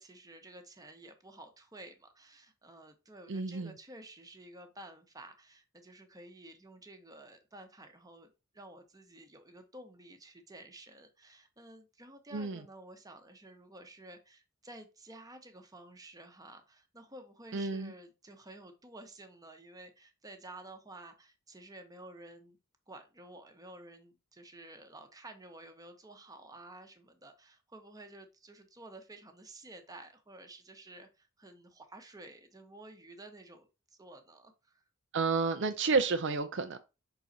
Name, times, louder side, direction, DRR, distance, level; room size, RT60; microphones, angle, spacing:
voice 1, 0.0-22.6 22.9-34.8, right 2 dB, 15° right, 1.0 m, -52 dB
voice 2, 3.3-3.7 12.3-12.6 17.5-17.9 35.1-36.8, right 4 dB, 60° right, 0.5 m, -30 dB
6.2 x 4.0 x 4.0 m
head